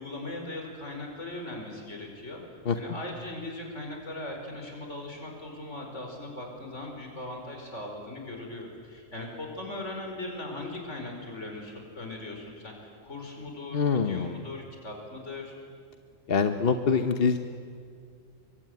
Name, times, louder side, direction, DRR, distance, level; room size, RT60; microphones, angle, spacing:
voice 1, 0.0-2.4 2.8-15.5, left 2 dB, 65° left, 2 dB, 5.3 m, -39 dB
voice 2, 13.7-14.3 16.3-17.4, left 5 dB, 50° left, 7 dB, 1.1 m, -24 dB
24.0 x 23.5 x 9.5 m, 2.2 s
omnidirectional pair, 1.3 m